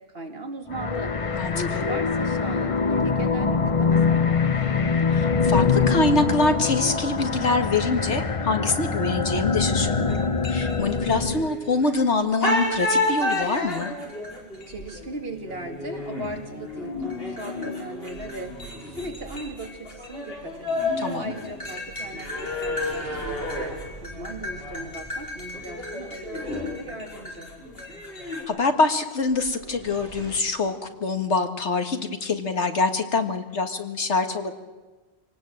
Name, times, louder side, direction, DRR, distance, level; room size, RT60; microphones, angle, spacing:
voice 1, 0.1-1.1 1.5-4.7 14.7-20.7 21.2-23.7 24.0-27.5, right 1 dB, 60° right, 3 dB, 2.7 m, -38 dB
sound 1, 0.7-11.5, left 5 dB, 35° left, 0.9 m, -24 dB
voice 2, 1.3-1.8 5.1-13.9 21.0-21.3 28.5-34.5, left 3 dB, 85° left, 7 dB, 2.0 m, -25 dB
sound 2, 10.1-12.0 12.4-28.4, left 2 dB, 60° left, 5.2 m, -31 dB
sound 3, 22.3-26.8 29.2-30.4, right 1 dB, 30° right, 3.8 m, -47 dB
26.0 x 18.0 x 7.8 m, 1.2 s
omnidirectional pair, 1.1 m